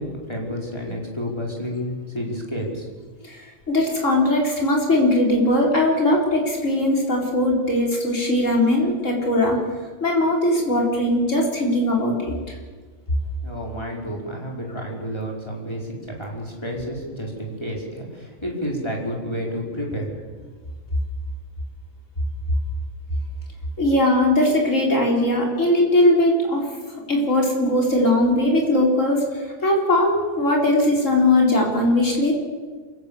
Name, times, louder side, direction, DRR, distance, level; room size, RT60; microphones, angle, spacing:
voice 1, 0.0-2.9 13.4-20.1, equal, 20° left, -1 dB, 5.2 m, -30 dB
voice 2, 3.2-9.6 10.0-12.6 23.8-26.6 27.1-32.3, left 1 dB, 85° left, -1 dB, 5.0 m, -20 dB
27.5 x 17.0 x 7.1 m, 1.5 s
omnidirectional pair, 1.3 m